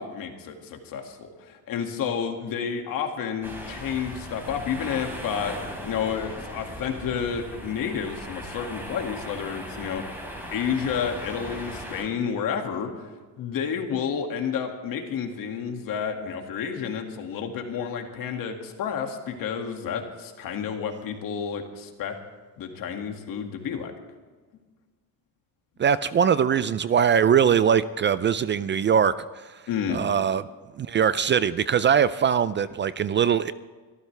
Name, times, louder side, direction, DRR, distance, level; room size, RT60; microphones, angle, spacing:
voice 1, 0.0-10.2 10.5-13.1 13.4-22.2 22.6-23.9 29.7-30.0, left 7 dB, 65° left, 3 dB, 2.2 m, -30 dB
sound 1, 3.4-12.0, equal, 5° right, 3.7 m, -38 dB
voice 2, 25.8-29.1 29.5-29.6 29.9-30.4 30.8-33.5, right 7 dB, 35° right, 15 dB, 0.4 m, -21 dB
24.5 x 14.0 x 3.4 m, 1.4 s
cardioid pair, 145°, 36 cm